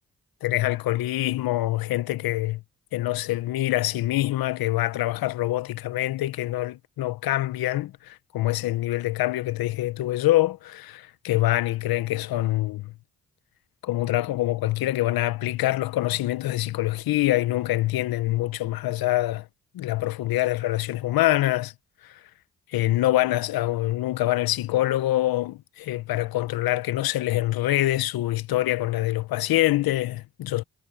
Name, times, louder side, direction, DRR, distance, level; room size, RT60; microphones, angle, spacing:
voice 1, 0.4-2.6 2.9-12.9 13.8-19.5 19.7-21.7 22.0-22.2 22.7-30.6, left 16 dB, 85° left, 0.8 m, -25 dB
supercardioid pair, 45°, 35 cm